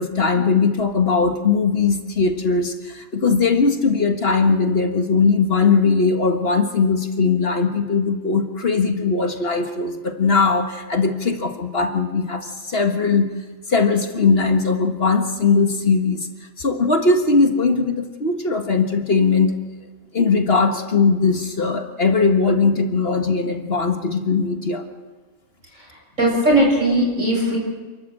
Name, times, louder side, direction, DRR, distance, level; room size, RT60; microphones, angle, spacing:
voice 1, 0.0-13.3 13.7-16.2 16.6-19.6 20.1-24.8, left 4 dB, 50° left, 5 dB, 1.8 m, -19 dB
voice 2, 25.7-27.6, right 1 dB, 70° right, -1 dB, 7.4 m, -19 dB
28.5 x 13.0 x 7.6 m, 1.3 s
omnidirectional pair, 1.4 m